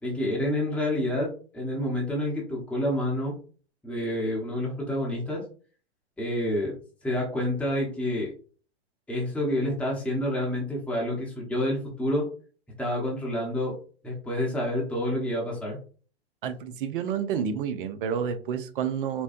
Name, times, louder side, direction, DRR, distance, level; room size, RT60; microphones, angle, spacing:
voice 1, 0.0-3.3 3.8-5.4 6.2-6.7 7.0-8.3 9.1-12.3 12.8-13.7 14.0-15.8, left 1 dB, 5° left, 0.9 m, -28 dB
voice 2, 16.4-19.2, right 7 dB, 55° right, 0.6 m, -29 dB
4.2 x 2.1 x 2.6 m
hypercardioid pair, 110°, 33 cm